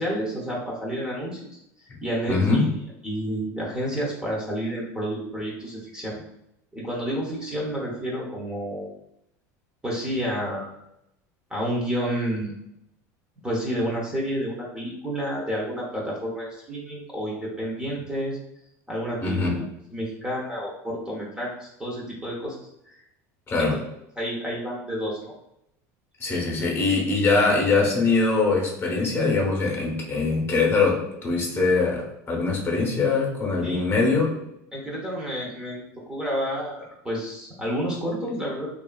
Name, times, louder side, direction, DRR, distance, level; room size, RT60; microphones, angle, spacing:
voice 1, 0.0-1.5 1.8-2.7 3.0-6.1 6.7-8.9 9.8-10.7 11.5-12.6 13.4-18.4 18.9-19.6 19.9-23.0 23.5-23.8 24.2-25.3 33.6-33.8 34.7-38.7, equal, 10° right, -4 dB, 0.7 m, -30 dB
voice 2, 2.3-2.6 19.2-19.5 23.5-23.8 26.2-34.3, left 3 dB, 25° left, -2 dB, 0.9 m, -22 dB
2.6 x 2.4 x 2.3 m, 0.81 s
supercardioid pair, 105°, 9 cm